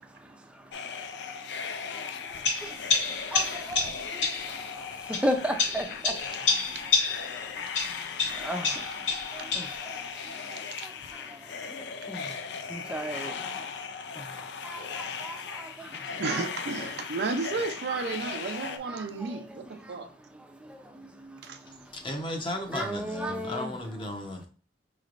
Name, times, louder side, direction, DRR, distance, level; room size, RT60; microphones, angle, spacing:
sound 1, 0.7-18.8, left 6 dB, 65° left, 0.4 m, -38 dB
sound 2, 2.4-4.5 5.1-7.4 7.7-9.8, left 4 dB, 90° left, 1.6 m, -29 dB
voice 1, 3.3-3.8 5.2-6.1 8.4-8.7 9.6-9.7 12.1-12.2 12.7-13.3 14.6-15.7 16.3-16.5 17.9-18.1 18.9-19.0 19.2-19.3 22.7-23.7, equal, 5° right, 0.5 m, -33 dB
voice 2, 16.2-20.1 21.4-21.6, right 4 dB, 60° right, 0.5 m, -33 dB
voice 3, 21.6-24.5, left 1 dB, 25° left, 0.7 m, -35 dB
5.0 x 3.2 x 2.5 m
head